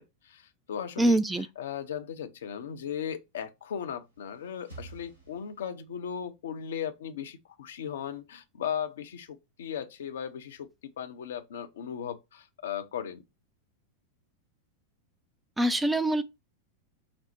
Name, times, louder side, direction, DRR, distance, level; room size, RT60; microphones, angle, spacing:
voice 1, 0.2-10.7 11.0-13.2, left 8 dB, 60° left, 0.5 m, -37 dB
voice 2, 1.0-1.5 15.6-16.2, right 1 dB, 5° right, 0.3 m, -24 dB
sound 1, 3.9-6.1, right 3 dB, 80° right, 1.5 m, -51 dB
5.0 x 2.0 x 4.4 m
figure-of-eight pair, 90°, 0 cm